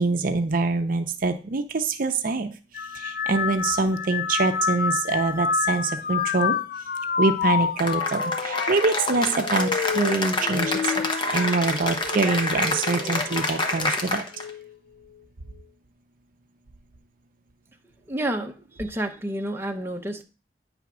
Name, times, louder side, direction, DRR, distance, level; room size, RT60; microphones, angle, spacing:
voice 1, 0.0-2.5 3.0-6.5 7.2-10.9 11.3-14.2, right 3 dB, 50° right, 8 dB, 0.6 m, -25 dB
sound 1, 2.7-12.4 12.8-13.4 14.4-14.7, left 6 dB, 55° left, 0.4 m, -28 dB
Cheering / Applause, 7.8-14.5, left 2 dB, 30° left, 1.0 m, -27 dB
voice 2, 18.1-20.2, right 1 dB, 15° right, 3 dB, 0.7 m, -30 dB
9.5 x 3.4 x 6.1 m, 0.35 s
head